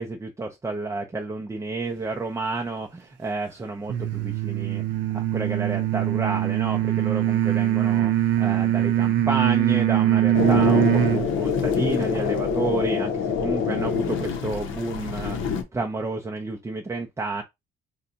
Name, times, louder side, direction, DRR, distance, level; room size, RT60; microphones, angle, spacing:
voice 1, 0.0-4.8 5.1-15.4 15.7-17.4, right 3 dB, 15° right, 0.5 m, -31 dB
sound 1, 3.9-11.3, right 12 dB, 70° right, 0.5 m, -22 dB
sound 2, 10.3-15.6, left 6 dB, 80° left, 0.7 m, -25 dB
2.7 x 2.2 x 3.8 m
cardioid pair, 90°, 20 cm